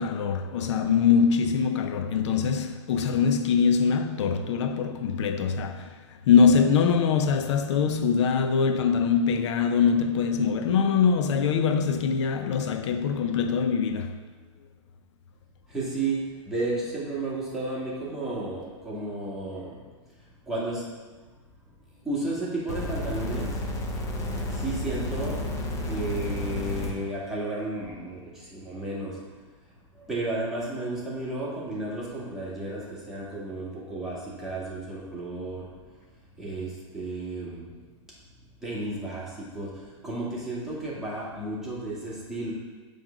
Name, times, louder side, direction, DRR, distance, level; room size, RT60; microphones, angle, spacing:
voice 1, 0.0-5.9 6.3-14.2, left 6 dB, 65° left, 0.6 m, -23 dB
voice 2, 15.7-19.8 20.2-21.0 22.0-23.7 24.5-29.4 29.9-36.0 36.4-37.7 38.6-42.5, right 2 dB, 5° right, 2.0 m, -33 dB
sound 1, 22.7-26.9 27.9-28.0, left 1 dB, 20° left, 0.9 m, -31 dB
7.6 x 3.4 x 5.1 m
hypercardioid pair, 130°, 16 cm